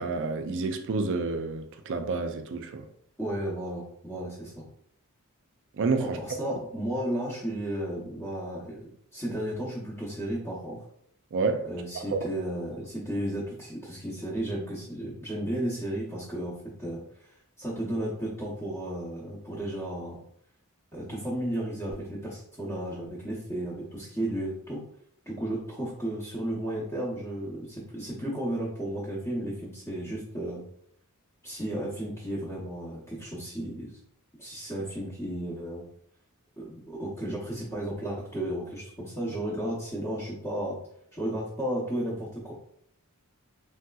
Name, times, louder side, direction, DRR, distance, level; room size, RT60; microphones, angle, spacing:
voice 1, 0.0-2.9 5.8-6.2 11.3-11.6 11.9-12.2, right 4 dB, 55° right, 0.4 m, -29 dB
voice 2, 3.2-4.6 6.0-10.8 11.6-17.0 17.6-20.2 20.9-24.8 25.3-30.6 31.4-33.9 34.4-35.8 36.6-40.8 41.1-42.5, right 1 dB, 15° left, 0.7 m, -33 dB
3.2 x 2.7 x 2.3 m
head